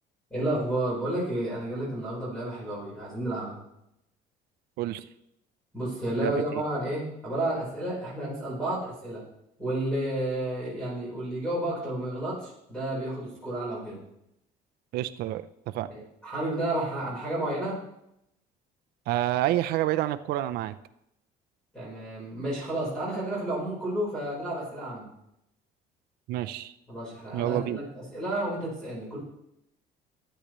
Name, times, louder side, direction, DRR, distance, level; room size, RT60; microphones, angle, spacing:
voice 1, 0.3-3.6 5.7-9.2 9.6-14.0 15.9-17.8 21.7-25.1 26.9-29.2, right 1 dB, 5° left, -7 dB, 4.2 m, -31 dB
voice 2, 14.9-15.9 19.1-20.8 26.3-26.7 27.3-27.8, right 14 dB, 70° right, 11 dB, 0.5 m, -28 dB
15.0 x 10.0 x 3.1 m, 0.83 s
cardioid pair, 155°, 16 cm